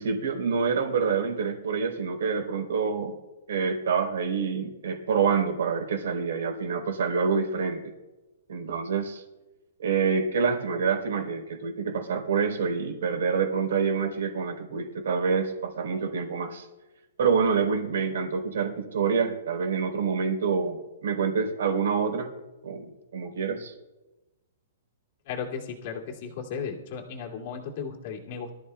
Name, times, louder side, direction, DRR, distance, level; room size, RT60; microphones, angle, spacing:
voice 1, 0.0-3.1 3.5-7.9 8.5-9.2 9.8-16.7 17.2-22.3 22.6-23.7, right 5 dB, 80° right, 3 dB, 3.8 m, -27 dB
voice 2, 25.3-28.5, left 6 dB, 45° left, 0 dB, 2.4 m, -35 dB
23.0 x 13.5 x 2.3 m, 1.1 s
hypercardioid pair, 160°, 0 cm